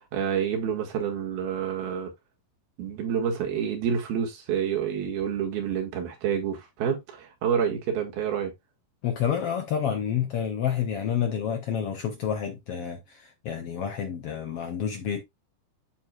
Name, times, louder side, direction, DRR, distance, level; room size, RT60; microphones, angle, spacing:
voice 1, 0.1-2.1 2.8-8.5, right 8 dB, 80° right, 3.7 m, -28 dB
voice 2, 9.0-15.2, left 8 dB, 90° left, 1.3 m, -29 dB
12.5 x 4.7 x 2.3 m
omnidirectional pair, 4.3 m